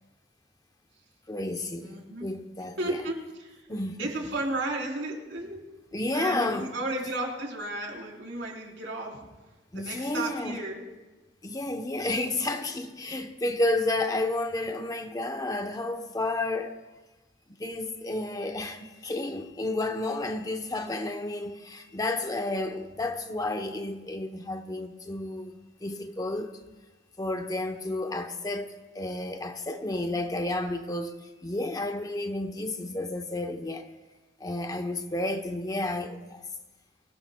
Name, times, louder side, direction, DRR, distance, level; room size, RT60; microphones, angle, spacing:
voice 1, 1.3-3.0 3.7-4.1 5.9-6.7 9.7-10.6 11.4-16.7 17.5-26.5 27.2-33.9 34.4-36.4, left 2 dB, 20° left, 0.8 m, -31 dB
voice 2, 1.8-2.3 2.8-3.7 4.0-5.6 6.1-9.2 9.7-10.8 35.0-35.1, right 2 dB, 85° right, 3.8 m, -33 dB
24.0 x 17.0 x 2.2 m
head